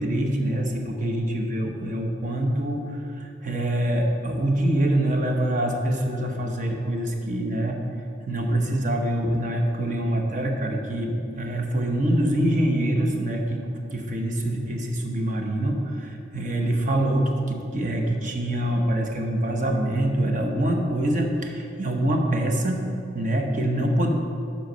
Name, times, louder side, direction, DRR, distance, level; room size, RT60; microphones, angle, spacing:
voice 1, 0.0-7.8 8.3-13.6 13.9-22.8 23.1-24.1, right 1 dB, 45° right, 2 dB, 0.9 m, -25 dB
7.8 x 5.7 x 5.2 m, 2.6 s
head